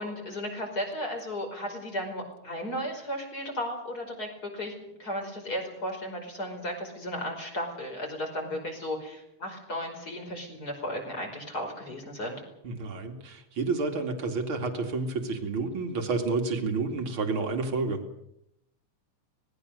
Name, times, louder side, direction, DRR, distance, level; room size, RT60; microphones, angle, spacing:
voice 1, 0.0-4.7 5.0-12.4, equal, 30° left, 3 dB, 5.6 m, -35 dB
voice 2, 12.6-18.0, right 3 dB, 40° right, 4 dB, 3.1 m, -30 dB
26.0 x 20.0 x 6.7 m, 0.81 s
omnidirectional pair, 3.6 m